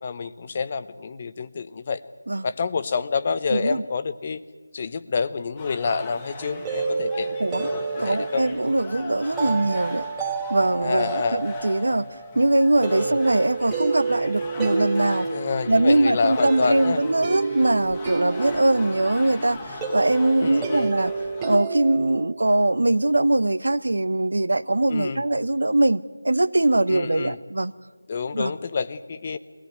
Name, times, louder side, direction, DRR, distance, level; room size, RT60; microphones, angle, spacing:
voice 1, 0.0-2.0 2.4-4.4 4.7-8.4 9.4-9.7 10.8-11.4 13.0-13.2 15.3-17.0 20.4-20.9 24.9-25.2 26.9-27.4 28.1-29.4, left 5 dB, 30° left, 13 dB, 0.9 m, -28 dB
voice 2, 3.5-3.8 7.4-7.7 8.0-10.0 10.5-12.1 12.3-15.3 15.7-21.1 21.4-27.7 28.3-28.5, right 2 dB, 75° right, 16 dB, 0.9 m, -22 dB
sound 1, 5.6-21.6, left 2 dB, 15° left, 1.6 m, -40 dB
sound 2, 6.4-22.3, right 4 dB, 10° right, 2.6 m, -30 dB
23.0 x 17.5 x 9.4 m, 1.4 s
figure-of-eight pair, 170°, 0 cm